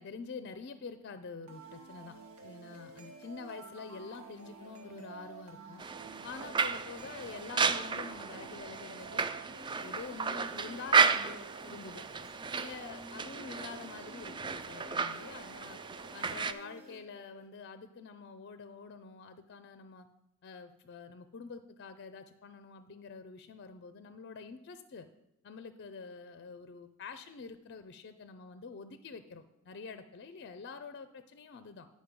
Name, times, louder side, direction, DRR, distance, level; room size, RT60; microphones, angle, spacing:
voice 1, 0.0-2.2 2.4-5.8 6.2-9.2 9.8-12.1 12.5-15.8 16.1-20.1 20.4-25.1 25.4-31.9, left 5 dB, 50° left, 10 dB, 0.4 m, -47 dB
sound 1, 1.5-17.5, right 3 dB, 85° right, 1.3 m, -51 dB
sound 2, 5.8-16.5, right 5 dB, 20° right, 0.3 m, -33 dB
10.5 x 5.1 x 5.2 m, 0.85 s
head